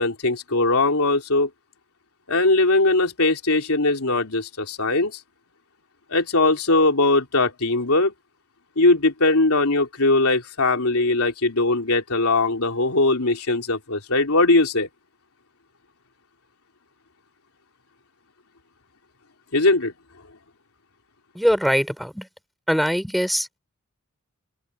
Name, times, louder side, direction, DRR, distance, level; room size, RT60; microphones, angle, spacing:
voice 1, 0.0-1.5 2.3-5.2 6.1-8.1 8.8-14.9 19.5-19.9, left 2 dB, 70° left, 3.7 m, -20 dB
voice 2, 21.3-22.3 22.7-23.6, equal, ahead, 5.7 m, -22 dB
head